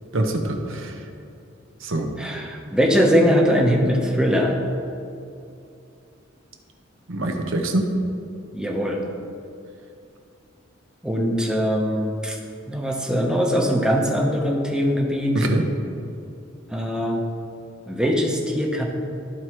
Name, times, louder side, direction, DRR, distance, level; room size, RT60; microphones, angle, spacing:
voice 1, 0.1-1.0 1.8-2.1 7.1-7.9 15.3-15.6, right 1 dB, 65° right, 4 dB, 0.9 m, -24 dB
voice 2, 2.2-4.6 8.5-9.0 11.0-12.4 12.7-15.5 16.7-17.2 17.9-18.8, equal, 5° right, 0 dB, 0.8 m, -21 dB
13.0 x 4.7 x 3.0 m, 2.6 s
head